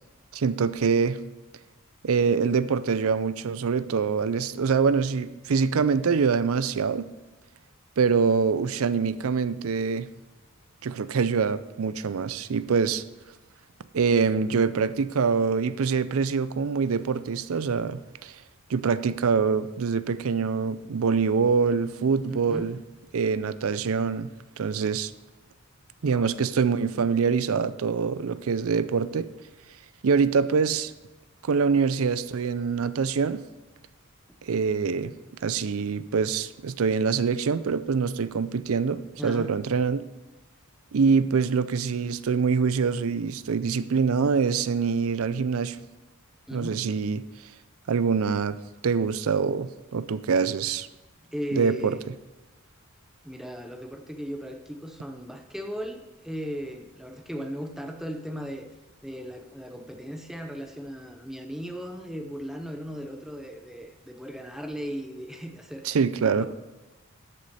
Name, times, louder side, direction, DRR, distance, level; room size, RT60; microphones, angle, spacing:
voice 1, 0.3-1.2 2.0-7.1 8.0-10.1 10.8-13.0 13.9-18.4 18.7-22.8 23.1-24.3 24.6-25.1 26.0-29.3 30.0-30.9 31.4-33.4 34.4-35.1 35.4-40.0 40.9-45.8 46.5-47.2 47.9-48.6 48.8-50.9 51.5-52.0 65.8-66.5, right 5 dB, 70° right, 15 dB, 0.5 m, -25 dB
voice 2, 22.3-22.7 26.0-26.3 39.2-39.6 46.5-46.8 51.2-52.0 53.2-58.7 59.0-66.0 66.2-66.5, equal, ahead, 4 dB, 0.6 m, -37 dB
13.0 x 6.4 x 4.2 m, 1.1 s
head